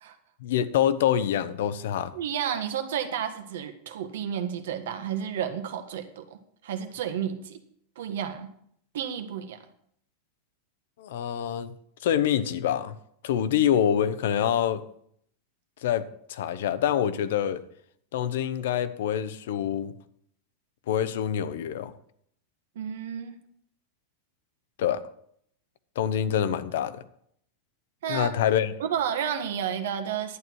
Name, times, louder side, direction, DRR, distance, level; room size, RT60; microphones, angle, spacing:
voice 1, 0.4-2.1 11.0-11.7 12.0-12.9 13.2-14.8 15.8-17.6 18.1-19.9 20.9-21.9 24.8-25.0 26.0-27.0 28.1-28.7, left 9 dB, 70° left, 13 dB, 0.8 m, -26 dB
voice 2, 2.1-6.4 6.6-7.6 7.9-8.5 8.9-9.6 22.7-23.4 28.0-28.3 28.8-30.4, right 8 dB, 80° right, 8 dB, 1.5 m, -31 dB
11.0 x 9.3 x 4.6 m, 0.68 s
supercardioid pair, 165°, 0 cm